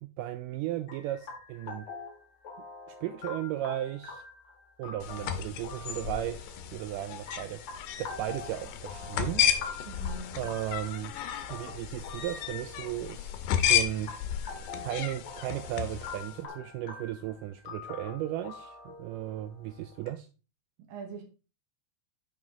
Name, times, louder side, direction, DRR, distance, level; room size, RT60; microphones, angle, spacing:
voice 1, 0.0-1.9 2.9-4.2 4.8-7.6 8.0-9.6 10.4-11.2 11.5-14.1 14.8-20.3, right 13 dB, 90° right, 1.8 m, -35 dB
sound 1, 0.9-20.1, left 4 dB, 65° left, 1.4 m, -46 dB
sound 2, 5.0-16.3, left 10 dB, 80° left, 2.7 m, -33 dB
voice 2, 9.8-10.4 20.8-21.2, right 4 dB, 70° right, 3.2 m, -42 dB
11.0 x 5.0 x 3.6 m
omnidirectional pair, 4.3 m